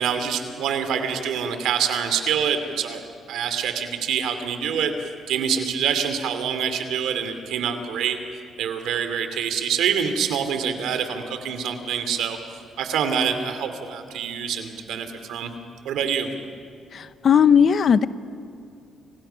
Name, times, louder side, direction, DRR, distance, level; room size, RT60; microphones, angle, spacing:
voice 1, 0.0-3.0 3.3-4.9 5.3-8.2 8.6-12.4 12.8-15.5 15.8-16.3, right 7 dB, 85° right, 8 dB, 2.7 m, -25 dB
voice 2, 16.9-18.1, left 7 dB, 55° left, 13 dB, 0.9 m, -17 dB
29.5 x 26.0 x 5.8 m, 2.4 s
cardioid pair, 90°, 0 cm